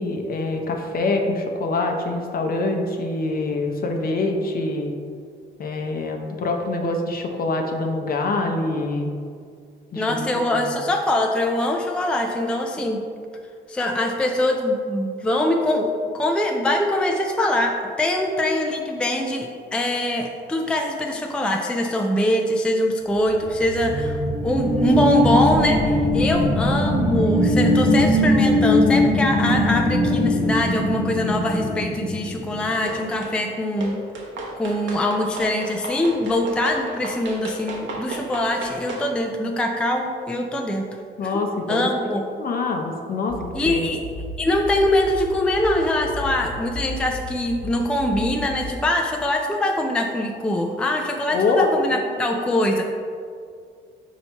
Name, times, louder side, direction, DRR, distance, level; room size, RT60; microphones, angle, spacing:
voice 1, 0.0-4.9 5.6-9.1 9.9-10.3 10.5-10.8 41.2-41.9 42.4-43.9 51.3-51.7, left 3 dB, 50° left, 3 dB, 0.6 m, -25 dB
voice 2, 10.0-13.0 13.7-15.9 16.1-33.9 34.5-40.9 41.2-41.3 41.7-42.2 43.5-44.0 44.4-52.8, left 1 dB, 5° left, 2 dB, 0.3 m, -23 dB
sound 1, 23.4-32.6, left 1 dB, 45° right, 1.1 m, -20 dB
sound 2, 32.9-33.4 33.8-39.1, right 2 dB, 70° right, 0.8 m, -34 dB
sound 3, 43.3-48.7, left 1 dB, 25° left, 1.3 m, -35 dB
4.3 x 2.8 x 4.4 m, 2.2 s
cardioid pair, 90°, 20 cm